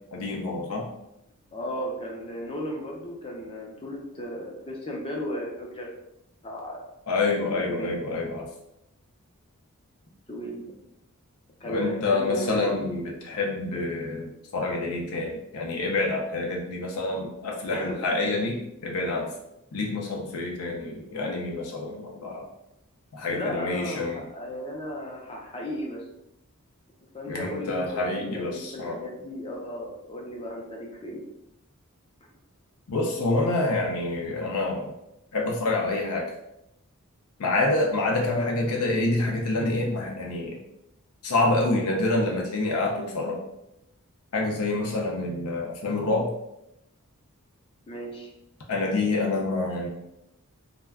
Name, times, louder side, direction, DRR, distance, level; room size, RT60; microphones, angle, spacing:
voice 1, 0.1-0.9 7.1-8.5 11.7-19.3 19.7-22.5 23.1-24.2 27.3-29.0 32.9-34.9 35.3-36.3 37.4-40.6 41.2-43.4 44.3-46.3 48.7-49.9, left 2 dB, 75° left, 0 dB, 0.5 m, -27 dB
voice 2, 1.5-5.9 6.4-6.8 7.5-8.0 10.3-10.7 11.6-12.8 17.7-18.0 20.8-20.9 23.3-26.0 27.1-31.2 38.3-38.5 47.9-48.3, equal, 25° left, -1 dB, 0.5 m, -35 dB
2.2 x 2.1 x 3.4 m, 0.85 s
head